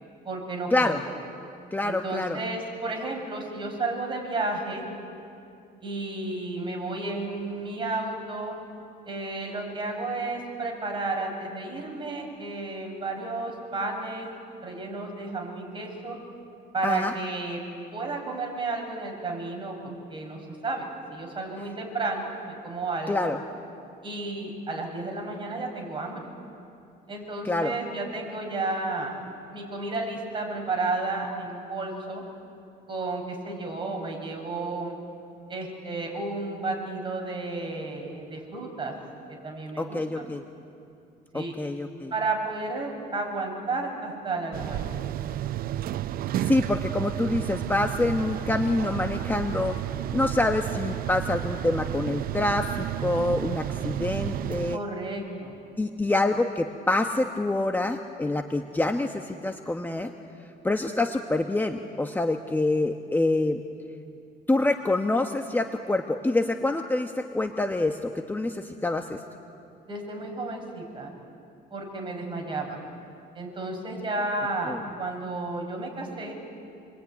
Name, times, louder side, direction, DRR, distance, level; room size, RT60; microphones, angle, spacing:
voice 1, 0.2-1.1 1.8-4.9 5.8-8.6 9.1-14.3 14.6-16.2 16.7-17.6 17.9-20.9 21.1-23.3 24.0-26.4 27.1-29.1 29.5-32.2 32.9-34.9 35.5-38.9 39.3-40.3 41.3-41.6 42.1-44.8 54.7-55.6 69.9-71.1 71.7-72.8 73.3-76.4, right 3 dB, 30° right, 1 dB, 7.2 m, -32 dB
voice 2, 1.7-2.4 16.8-17.1 23.1-23.4 27.4-27.7 39.8-40.4 41.3-42.1 46.4-49.8 50.1-54.8 55.8-60.1 60.6-63.6 64.5-69.2 74.7-74.8, left 2 dB, 10° left, 4 dB, 1.2 m, -26 dB
sound 1, 44.5-54.8, right 12 dB, 60° right, 0.6 m, -31 dB
27.5 x 22.5 x 9.6 m, 2.6 s
cardioid pair, 110°, 17 cm